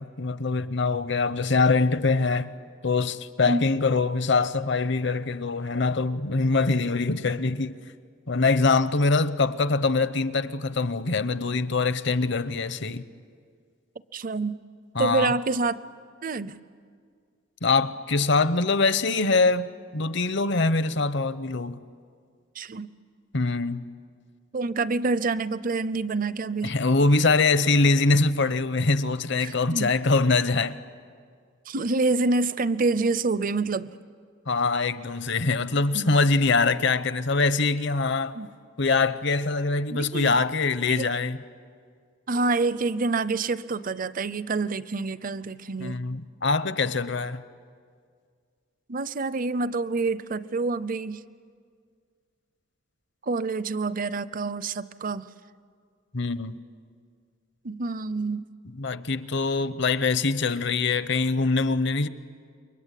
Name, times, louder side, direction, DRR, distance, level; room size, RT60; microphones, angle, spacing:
voice 1, 0.0-2.5 2.8-7.8 8.3-13.0 14.9-15.3 17.6-21.8 23.3-23.9 26.6-30.8 34.5-38.4 38.8-41.4 45.8-47.4 56.1-56.6 58.7-62.1, left 3 dB, 60° left, 0.8 m, -23 dB
voice 2, 14.1-14.6 15.0-15.8 16.2-16.6 22.6-22.9 24.5-26.7 29.4-29.9 31.7-33.9 35.9-36.1 38.3-38.5 39.9-40.4 40.9-41.1 42.3-46.0 48.9-51.2 53.2-55.3 57.6-58.5, right 3 dB, 45° right, 0.6 m, -27 dB
29.0 x 23.5 x 8.4 m
head